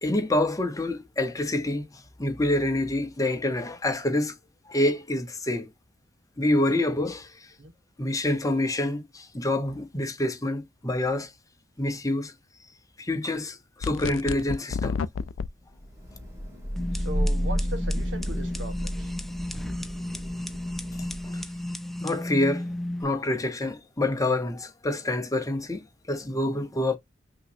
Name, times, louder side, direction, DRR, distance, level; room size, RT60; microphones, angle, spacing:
voice 1, 0.0-1.8 2.2-4.3 4.7-5.7 6.4-7.3 8.0-11.3 11.8-12.3 13.0-15.0 21.2-21.4 22.0-22.7 23.0-27.0, left 1 dB, 20° left, 0.9 m, -27 dB
sound 1, 13.8-15.5, left 5 dB, 85° left, 0.4 m, -30 dB
Thunder / Rain, 15.8-21.5, equal, 15° right, 2.4 m, -31 dB
sound 2, 16.8-23.0, left 1 dB, ahead, 0.4 m, -34 dB
voice 2, 16.9-19.1, right 1 dB, 70° right, 1.2 m, -38 dB
5.8 x 3.0 x 2.6 m
head